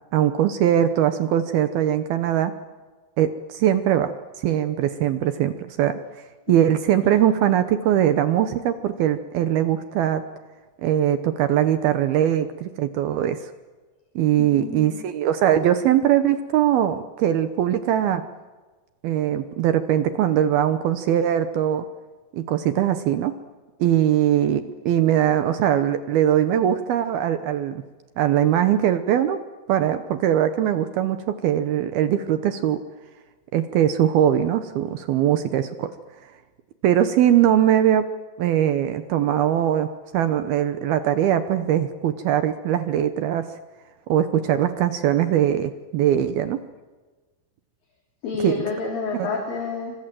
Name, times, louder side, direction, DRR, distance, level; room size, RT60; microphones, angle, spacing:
voice 1, 0.1-2.5 3.2-6.0 6.5-10.2 10.8-13.5 14.2-18.3 19.0-21.9 22.3-23.3 23.8-27.8 28.2-29.4 29.7-32.8 33.5-35.9 36.8-38.1 38.4-43.5 44.1-46.6 48.4-48.5 49.1-49.3, right 10 dB, 70° right, 10 dB, 2.6 m, -21 dB
voice 2, 14.4-15.0 48.2-49.9, left 4 dB, 55° left, 1 dB, 4.8 m, -29 dB
28.5 x 25.5 x 7.7 m, 1.3 s
omnidirectional pair, 5.2 m